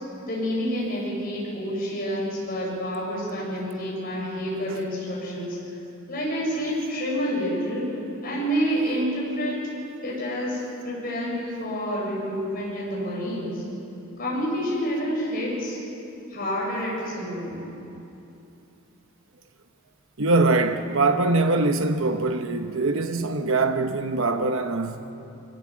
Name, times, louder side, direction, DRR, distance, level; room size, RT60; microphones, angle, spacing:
voice 1, 0.2-5.6 6.1-9.7 10.0-13.6 14.2-15.8 16.3-17.7, equal, 40° left, 7.0 m, -28 dB
voice 2, 20.2-25.0, right 3 dB, 65° right, 0.9 m, -23 dB
24.0 x 17.0 x 7.5 m
head